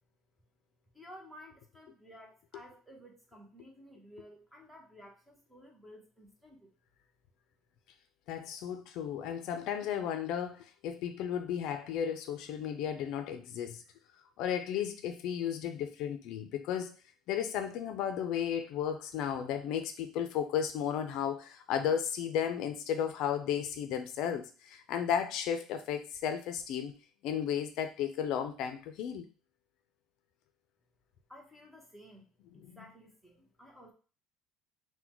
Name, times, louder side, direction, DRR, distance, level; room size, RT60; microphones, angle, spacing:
voice 1, 0.9-6.7 31.3-32.3 32.5-33.9, equal, 5° right, 0 dB, 1.0 m, -54 dB
voice 2, 8.3-13.8 14.4-16.9 17.3-26.9 27.2-29.2 32.6-32.8, left 8 dB, 65° left, 8 dB, 0.4 m, -34 dB
3.9 x 2.2 x 4.4 m, 0.37 s
cardioid pair, 135°, 0 cm